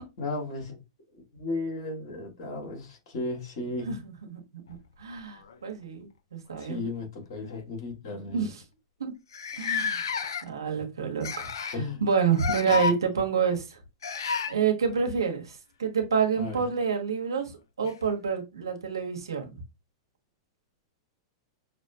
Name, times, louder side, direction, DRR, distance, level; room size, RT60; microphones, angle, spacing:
voice 1, 0.2-0.8 1.4-3.9 6.6-8.5 11.7-12.0 12.7-12.8 16.3-16.6, left 2 dB, 60° left, 1.9 m, -34 dB
voice 2, 3.8-4.4 5.0-6.8 8.2-8.6 9.0-9.1 9.6-13.8 14.5-17.5 17.8-19.6, right 6 dB, 90° right, 1.2 m, -28 dB
sound 1, 4.7-5.8 6.9-7.1 7.4-7.6 8.3-8.4 8.6-8.7 9.3-10.7 11.2-11.8 12.3-13.0 14.0-14.5 16.7-16.8 17.8-17.9, left 5 dB, 80° left, 0.5 m, -31 dB
5.8 x 2.1 x 2.8 m
hypercardioid pair, 110°, 2 cm